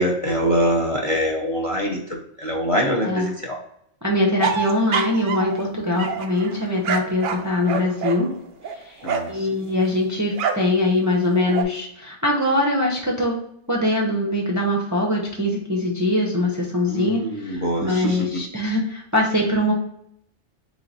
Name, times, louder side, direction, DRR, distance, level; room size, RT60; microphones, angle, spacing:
voice 1, 0.0-3.6 5.9-6.1 9.0-9.5 16.9-18.4, equal, 35° left, -1 dB, 0.6 m, -24 dB
voice 2, 4.0-8.3 8.8-9.0 9.3-13.4 13.7-19.7, left 1 dB, 20° right, -2 dB, 0.6 m, -22 dB
sound 1, 4.4-5.6 6.0-9.4 10.3-10.7 11.1-11.6, right 6 dB, 60° right, 0.6 m, -27 dB
3.9 x 3.0 x 3.9 m, 0.71 s
omnidirectional pair, 1.2 m